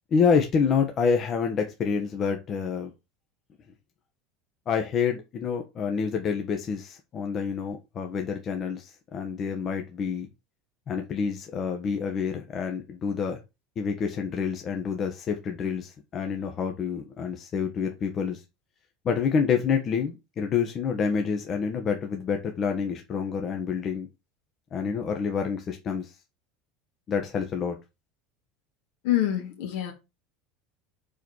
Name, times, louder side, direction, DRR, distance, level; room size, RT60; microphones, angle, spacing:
voice 1, 0.1-2.9 4.7-10.3 10.9-13.4 13.8-18.4 19.0-24.1 24.7-26.1 27.1-27.8, left 6 dB, 40° left, 1.3 m, -27 dB
voice 2, 29.0-29.9, left 13 dB, 75° left, 2.3 m, -26 dB
4.9 x 4.7 x 4.6 m
hypercardioid pair, 95°, 0 cm